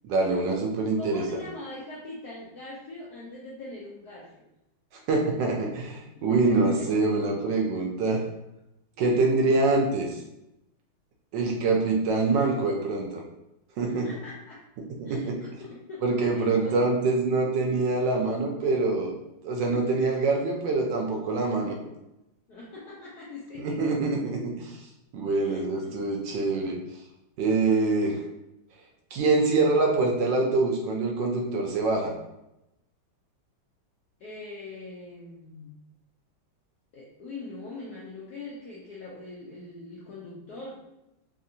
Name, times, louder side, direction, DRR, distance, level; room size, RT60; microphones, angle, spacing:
voice 1, 0.0-1.3 5.1-8.2 9.0-10.2 11.3-13.2 13.8-14.1 15.0-15.4 16.0-19.1 19.4-21.8 23.6-24.9 25.1-26.8 27.4-28.2 29.1-32.1, right 3 dB, 75° right, 1 dB, 1.1 m, -25 dB
voice 2, 1.0-4.4 6.1-6.7 9.0-9.2 9.5-9.6 13.9-14.6 15.0-16.8 22.5-23.8 25.4-26.1 26.5-26.6 34.2-35.9 36.9-40.8, left 2 dB, 80° left, -5 dB, 0.9 m, -42 dB
3.5 x 2.5 x 2.7 m, 0.89 s
omnidirectional pair, 2.3 m